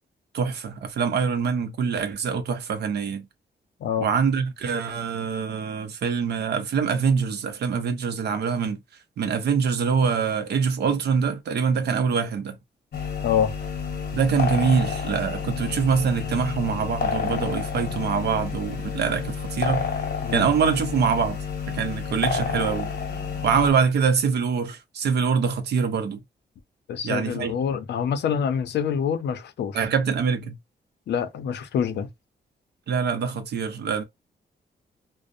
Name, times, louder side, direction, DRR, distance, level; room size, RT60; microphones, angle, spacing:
voice 1, 0.3-3.3 4.0-8.8 9.2-12.6 14.1-19.8 20.3-21.4 21.7-22.9 23.4-26.2 27.0-27.5 29.7-30.6 32.9-34.0, right 6 dB, 70° right, 0.5 m, -24 dB
sound 1, 12.9-23.7, left 6 dB, 60° left, 0.8 m, -30 dB
voice 2, 26.9-29.8 31.1-32.1, left 8 dB, 80° left, 0.5 m, -26 dB
2.5 x 2.0 x 2.5 m
wide cardioid pair, 170°, 18 cm